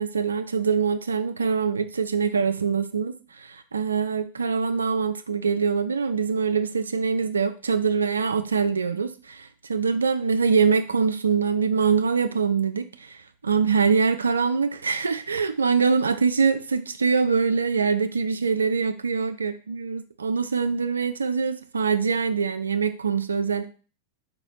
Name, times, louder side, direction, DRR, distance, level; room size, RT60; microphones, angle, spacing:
voice 1, 0.0-23.7, right 5 dB, 75° right, 11 dB, 0.3 m, -24 dB
4.6 x 3.3 x 2.5 m, 0.37 s
figure-of-eight pair, 90°, 0 cm